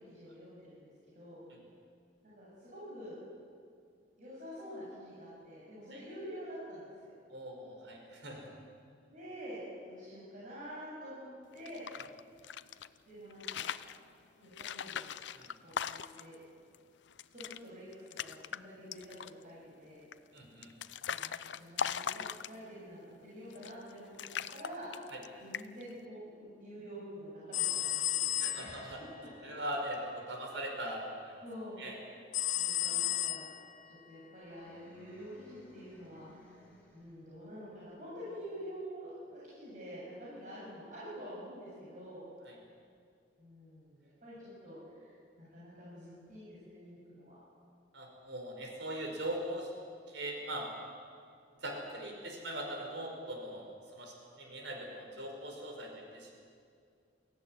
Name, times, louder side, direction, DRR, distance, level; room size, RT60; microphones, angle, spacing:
voice 1, 0.0-1.4 2.2-3.2 4.2-7.2 9.1-9.6 9.9-11.8 13.1-13.7 14.4-15.1 15.6-16.4 17.3-20.1 21.0-24.9 25.4-29.5 31.4-31.8 32.6-33.5 33.8-36.5 36.9-42.2 43.4-47.4, equal, 45° right, -8 dB, 7.6 m, -48 dB
voice 2, 7.3-8.5 15.3-15.5 20.3-20.7 25.1-25.2 28.4-29.0 29.4-31.4 31.8-32.0 32.8-33.1 42.4-42.6 47.9-49.7 50.1-50.7 51.6-56.4, right 1 dB, 85° right, 2 dB, 5.0 m, -41 dB
sound 1, 11.5-12.9 13.3-14.0 14.5-16.4 16.7-16.8 17.1-17.6 17.9-18.6 18.9-19.4 20.1-22.8 23.5-23.9 24.2-25.3 25.5-25.9, left 8 dB, 80° left, 0.6 m, -39 dB
sound 2, 27.5-29.0 32.3-33.8, left 14 dB, 45° left, 0.7 m, -33 dB
sound 3, 34.4-37.3, left 1 dB, 10° left, 5.7 m, -59 dB
22.0 x 15.5 x 9.9 m, 2.3 s
head